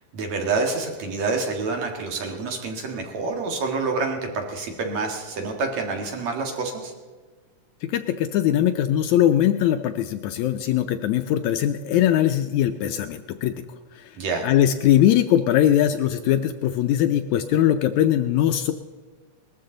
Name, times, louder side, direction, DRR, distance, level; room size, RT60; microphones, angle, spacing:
voice 1, 0.1-6.9 14.2-14.5, right 4 dB, 60° right, 2 dB, 2.9 m, -27 dB
voice 2, 7.8-13.6 14.0-14.1 14.4-18.7, left 11 dB, 75° left, 8 dB, 1.8 m, -21 dB
20.0 x 13.5 x 3.9 m, 1.4 s
omnidirectional pair, 3.7 m